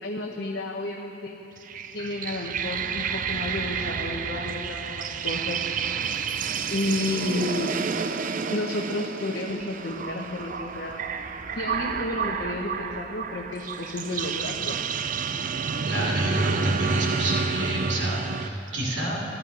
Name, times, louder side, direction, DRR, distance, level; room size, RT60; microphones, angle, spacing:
voice 1, 0.0-1.4 1.9-5.7 6.7-7.7 8.5-11.0 11.5-14.8, left 2 dB, 70° left, 0 dB, 0.9 m, -31 dB
sound 1, 1.6-18.5, right 6 dB, 45° right, 0.5 m, -30 dB
voice 2, 15.9-19.2, right 1 dB, 85° right, -4 dB, 2.6 m, -28 dB
13.0 x 13.0 x 5.3 m, 2.9 s
head